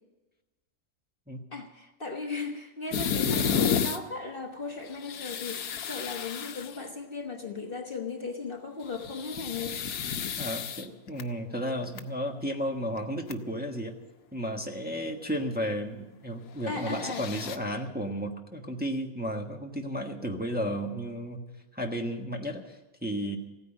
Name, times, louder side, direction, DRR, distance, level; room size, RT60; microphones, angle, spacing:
voice 1, 1.5-9.8 16.7-17.3, left 4 dB, 40° left, 3 dB, 1.4 m, -37 dB
sound 1, 2.9-4.0 4.9-6.9 8.8-11.2 11.8-12.0 13.0-13.1 13.3-13.4 16.7-17.6, left 7 dB, 80° left, 1.4 m, -31 dB
voice 2, 10.4-14.0 14.3-21.4 21.7-23.4, equal, 5° right, 1 dB, 1.3 m, -33 dB
16.0 x 9.7 x 8.8 m, 1.1 s
omnidirectional pair, 1.6 m